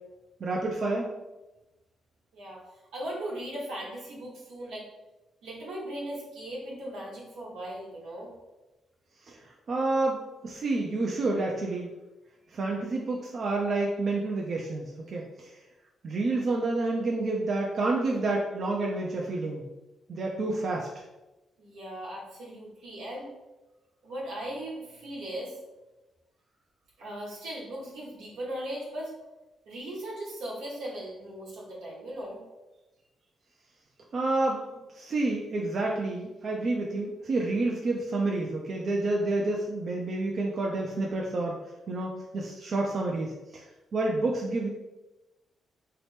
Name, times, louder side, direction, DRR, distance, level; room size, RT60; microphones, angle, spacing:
voice 1, 0.4-1.1 9.2-10.2 10.4-11.9 12.5-15.6 16.0-19.7 20.1-21.0 34.1-34.6 34.9-41.6 41.9-44.7, right 2 dB, 55° right, -1 dB, 0.5 m, -29 dB
voice 2, 2.9-4.8 5.4-8.3 21.6-23.3 24.0-25.5 27.0-29.1 29.7-32.4, right 1 dB, 90° right, -5 dB, 1.2 m, -38 dB
3.2 x 2.8 x 3.3 m, 1.0 s
cardioid pair, 70°, 0 cm